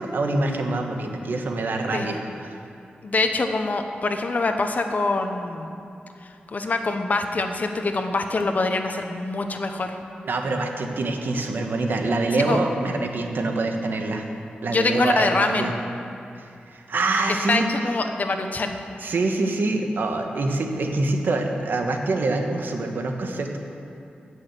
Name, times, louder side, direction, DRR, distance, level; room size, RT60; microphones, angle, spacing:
voice 1, 0.0-2.6 10.2-14.2 14.6-15.7 16.3-17.7 19.0-23.6, right 2 dB, 70° right, 3 dB, 1.4 m, -25 dB
voice 2, 3.0-5.7 6.5-10.0 12.4-12.6 14.7-15.7 17.5-18.8, left 3 dB, 50° left, 6 dB, 1.0 m, -24 dB
16.0 x 6.5 x 7.6 m, 2.6 s
cardioid pair, 75°, 3 cm